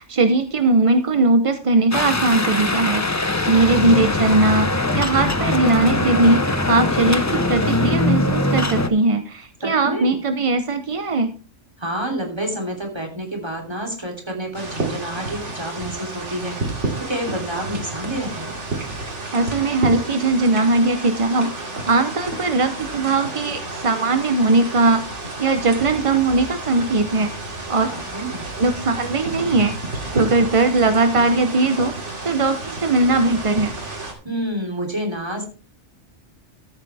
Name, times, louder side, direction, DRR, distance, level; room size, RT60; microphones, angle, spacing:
voice 1, 0.0-11.3 19.3-21.5 21.8-25.0 25.4-27.3 27.7-28.0 28.6-29.8 30.1-31.9 32.2-33.7, right 2 dB, 35° right, 8 dB, 0.6 m, -19 dB
sound 1, 1.9-8.9, left 2 dB, 20° left, 0.6 m, -21 dB
voice 2, 3.7-4.0 9.6-10.1 11.8-18.5 27.9-28.5 34.2-35.5, right 1 dB, 20° right, 1 dB, 3.1 m, -29 dB
sound 2, 14.5-34.1, right 2 dB, 60° right, 2.9 m, -31 dB
13.5 x 9.0 x 3.4 m, 0.38 s
omnidirectional pair, 1.4 m